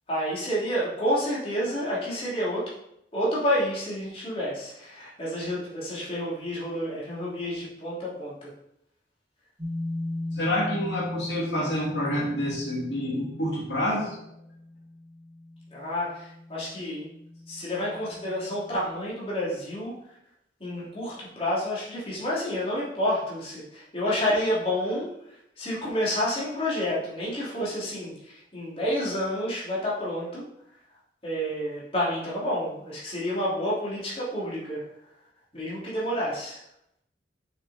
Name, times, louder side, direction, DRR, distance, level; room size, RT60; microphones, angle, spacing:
voice 1, 0.1-2.6 3.1-8.5 15.7-17.0 17.5-19.9 20.6-30.4 31.2-34.8 35.5-36.6, equal, 35° left, -7 dB, 3.0 m, -29 dB
sound 1, 9.6-19.1, left 1 dB, 25° right, 2.1 m, -38 dB
voice 2, 10.4-14.1, left 1 dB, 80° left, -4 dB, 2.5 m, -28 dB
7.0 x 6.1 x 4.2 m, 0.78 s
head